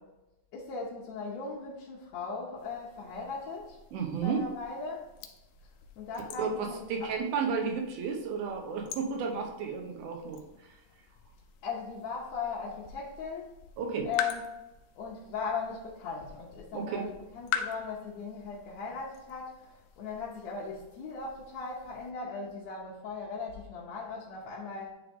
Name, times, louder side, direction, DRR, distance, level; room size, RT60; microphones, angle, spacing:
voice 1, 0.5-3.8 4.2-5.1 6.0-7.1 11.6-13.5 14.0-14.6 15.0-17.1 17.3-24.9, left 4 dB, 70° left, -6 dB, 1.9 m, -38 dB
sound 1, 2.6-22.1, left 9 dB, 85° left, 2.2 m, -44 dB
voice 2, 3.9-4.5 6.4-10.4 13.8-14.1 16.7-17.0, right 5 dB, 75° right, 2 dB, 2.4 m, -32 dB
9.8 x 3.5 x 3.5 m, 1.0 s
omnidirectional pair, 3.6 m